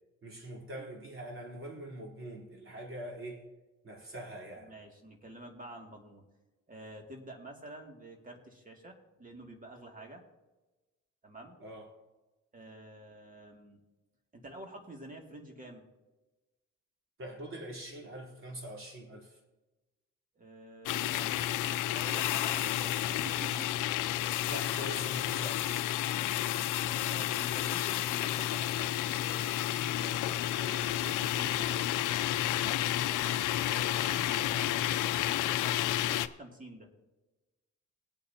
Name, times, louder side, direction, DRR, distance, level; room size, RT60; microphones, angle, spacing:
voice 1, 0.2-3.5 3.8-4.7 11.6-11.9 17.2-19.4 24.5-25.9 34.5-34.8, right 1 dB, 45° right, -1 dB, 3.7 m, -43 dB
voice 2, 4.6-6.2 6.7-10.2 11.2-11.6 12.5-13.8 14.3-15.9 20.3-23.9 26.1-29.5 29.7-30.2 30.5-31.9 32.6-32.9 33.7-36.9, right 1 dB, 25° right, 2 dB, 2.5 m, -49 dB
sound 1, 20.9-36.3, left 13 dB, 85° left, 0.6 m, -31 dB
20.5 x 8.6 x 2.9 m, 1.1 s
cardioid pair, 90°, 30 cm